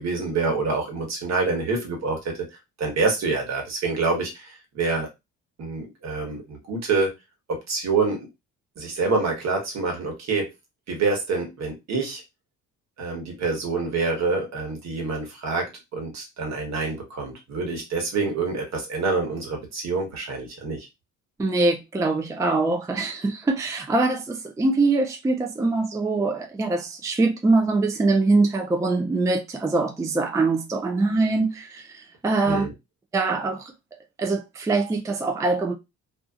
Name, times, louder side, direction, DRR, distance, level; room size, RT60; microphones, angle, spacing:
voice 1, 0.0-2.3 2.8-5.1 5.6-7.1 7.5-8.3 8.8-10.5 10.9-12.2 13.0-20.9 32.4-32.7, right 3 dB, 60° right, 1.3 m, -26 dB
voice 2, 21.4-32.6 33.1-33.7 34.2-35.7, right 3 dB, 10° right, 0.4 m, -23 dB
2.7 x 2.4 x 2.4 m
cardioid pair, 90°, 30 cm